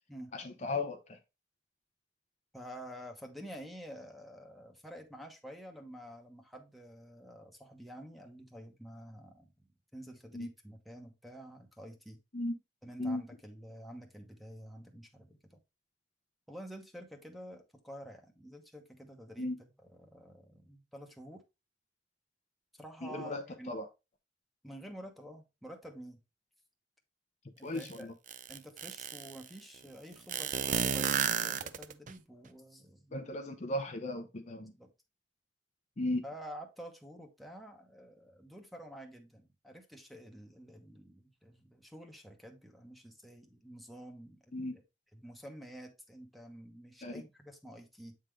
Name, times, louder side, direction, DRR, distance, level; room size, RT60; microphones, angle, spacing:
voice 1, 0.3-1.2 10.3-10.5 12.3-12.6 13.0-13.2 19.4-19.6 23.0-23.4 23.7-23.9 27.6-28.1 33.1-34.7 36.0-36.2 44.5-44.8 47.0-47.2, left 2 dB, 40° left, 0.7 m, -36 dB
voice 2, 2.5-12.2 12.8-15.6 16.5-19.5 19.9-21.4 22.7-23.7 24.6-26.2 27.6-28.1 28.5-33.2 34.6-34.9 36.2-44.7 45.1-48.1, equal, ahead, 1.0 m, -49 dB
sound 1, 27.8-27.9 28.3-29.4 30.3-32.1, right 8 dB, 45° right, 0.5 m, -32 dB
8.1 x 3.7 x 3.2 m
head